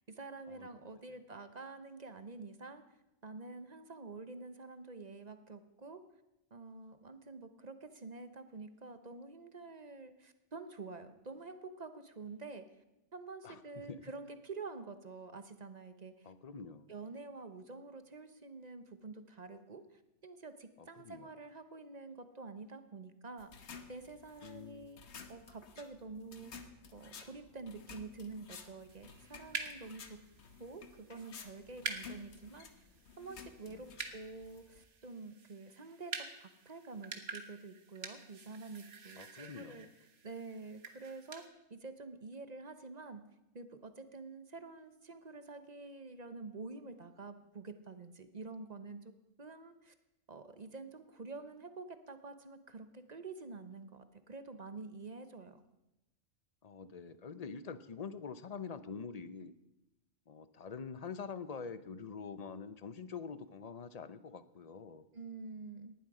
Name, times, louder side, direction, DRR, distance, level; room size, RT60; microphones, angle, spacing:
voice 1, 0.1-2.8 3.2-6.0 6.5-12.7 13.1-16.3 16.9-23.5 23.9-25.0 25.3-26.6 26.9-30.2 30.6-32.9 33.2-39.9 40.2-41.4 41.7-43.2 43.5-49.1 49.4-49.9 50.3-55.6 65.1-65.9, right 3 dB, 35° right, 9 dB, 1.0 m, -48 dB
voice 2, 13.4-14.0 16.2-16.9 20.8-21.3 24.4-24.9 33.7-33.8 39.2-39.9 56.6-59.5 60.3-65.0, left 5 dB, 40° left, 13 dB, 0.7 m, -46 dB
sound 1, 23.4-34.8, left 5 dB, 65° left, 1.4 m, -54 dB
sound 2, 28.9-41.5, right 4 dB, 55° right, 1.5 m, -48 dB
19.0 x 11.5 x 4.9 m, 0.92 s
omnidirectional pair, 1.3 m